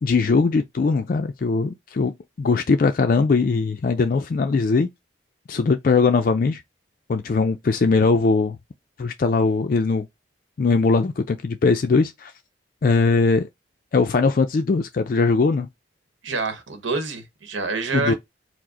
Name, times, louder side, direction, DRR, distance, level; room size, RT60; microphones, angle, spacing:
voice 1, 0.0-4.9 5.5-6.6 7.1-8.6 9.0-10.1 10.6-12.3 12.8-13.5 13.9-15.7 17.9-18.1, left 4 dB, 45° left, 0.3 m, -20 dB
voice 2, 16.2-18.1, right 3 dB, 85° right, 0.9 m, -27 dB
4.8 x 2.0 x 3.7 m
head